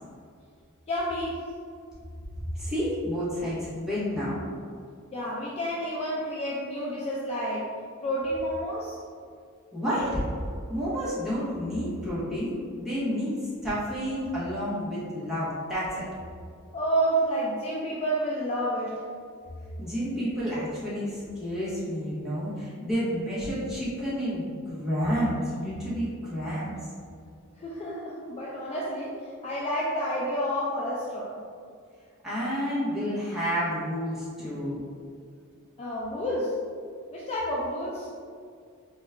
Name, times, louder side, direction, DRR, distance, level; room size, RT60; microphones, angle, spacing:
voice 1, 0.9-1.5 5.1-7.8 8.0-9.0 16.7-19.0 27.6-31.4 34.4-34.5 35.8-36.6 37.1-38.1, equal, 30° left, -5 dB, 0.4 m, -30 dB
voice 2, 2.5-4.4 9.7-10.2 10.7-16.1 19.8-26.8 32.2-34.8, equal, ahead, -10 dB, 1.1 m, -30 dB
3.9 x 2.3 x 3.6 m, 2.2 s
head